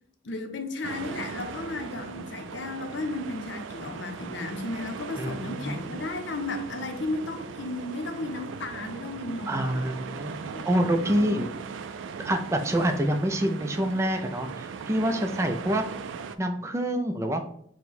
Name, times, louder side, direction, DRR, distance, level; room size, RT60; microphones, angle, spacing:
voice 1, 0.2-9.9 10.5-10.7 11.0-11.4, left 2 dB, 75° left, 0.6 m, -34 dB
sound 1, 0.8-16.4, right 5 dB, 85° right, 0.3 m, -39 dB
voice 2, 5.2-6.0 9.5-11.5 12.2-15.9 16.4-17.5, right 1 dB, 15° right, 0.4 m, -27 dB
4.5 x 2.1 x 4.1 m
head